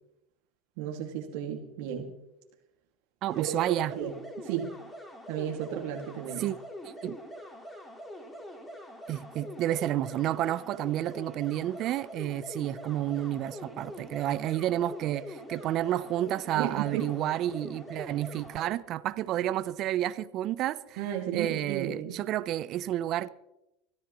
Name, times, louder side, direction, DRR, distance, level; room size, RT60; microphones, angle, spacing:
voice 1, 0.8-2.1 3.4-4.8 5.3-6.5 16.5-17.1 21.0-22.2, right 9 dB, 70° right, 2.1 m, -34 dB
voice 2, 3.2-3.9 6.4-6.6 6.8-7.2 9.1-21.0 21.3-23.3, right 13 dB, 50° right, 0.7 m, -30 dB
sound 1, 3.3-18.7, equal, 20° left, 4.6 m, -44 dB
24.0 x 14.0 x 3.1 m
hypercardioid pair, 90°, 0 cm